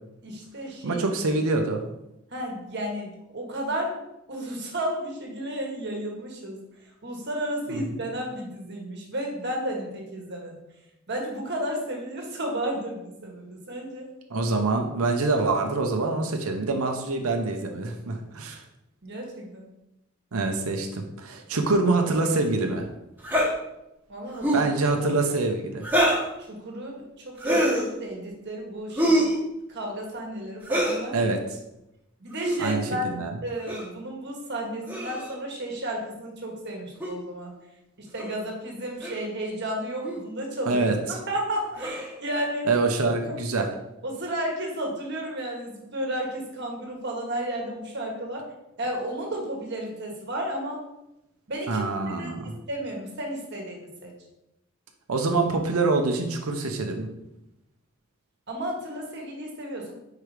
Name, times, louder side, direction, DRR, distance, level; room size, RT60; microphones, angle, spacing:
voice 1, 0.2-1.0 1.3-1.4 2.3-4.0 4.3-6.6 7.0-10.6 11.1-14.1 19.0-19.7 24.1-24.7 26.4-29.3 29.7-31.3 32.2-37.5 38.0-40.8 41.1-42.7 43.2-43.4 44.0-48.5 48.8-50.8 51.5-51.8 52.1-54.1 58.5-59.9, right 1 dB, 55° right, 0 dB, 1.5 m, -33 dB
voice 2, 0.8-1.8 14.3-18.6 20.3-22.9 24.5-25.9 31.1-31.4 32.6-33.3 40.7-41.2 42.6-43.7 51.7-52.6 55.1-57.1, right 3 dB, 85° right, 3 dB, 0.8 m, -25 dB
sound 1, 23.2-23.5 24.3-24.7 25.8-26.3 27.4-27.9 29.0-29.4 30.6-31.0 32.3-32.6 33.7-33.9 34.9-35.3 37.0-37.1 38.2-38.3 39.0-39.2 40.0-40.2 41.8-42.1, right 1 dB, 10° right, 1.2 m, -24 dB
4.8 x 4.7 x 4.9 m, 0.88 s
head